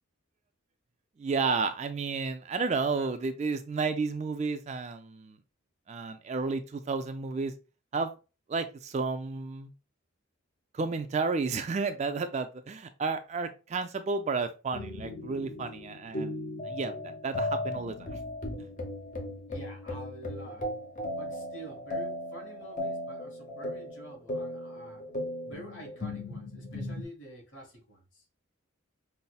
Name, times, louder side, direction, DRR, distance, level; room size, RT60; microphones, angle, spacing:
voice 1, 1.2-5.4 5.9-7.5 7.9-8.1 8.5-9.7 10.7-16.4 16.6-18.2 18.6-18.7, right 4 dB, 35° right, 0.3 m, -32 dB
sound 1, 14.7-27.0, left 1 dB, 40° left, 0.8 m, -37 dB
voice 2, 19.5-20.7 21.1-25.0 25.4-28.2, right 1 dB, 60° left, 1.3 m, -48 dB
5.3 x 2.0 x 2.2 m
head